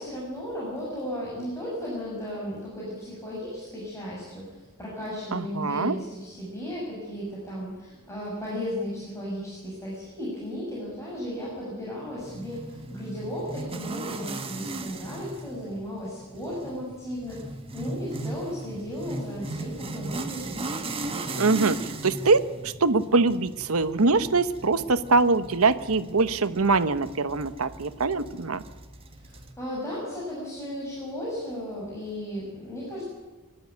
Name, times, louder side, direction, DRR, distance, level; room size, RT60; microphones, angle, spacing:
voice 1, 0.0-17.4 17.7-20.6 29.2-33.1, equal, 15° left, -6 dB, 6.2 m, -35 dB
voice 2, 5.3-6.0 21.4-28.6, right 3 dB, 70° right, 12 dB, 1.0 m, -23 dB
sound 1, 12.2-29.5, right 2 dB, 25° right, 1.7 m, -38 dB
23.5 x 12.0 x 9.4 m, 1.2 s
head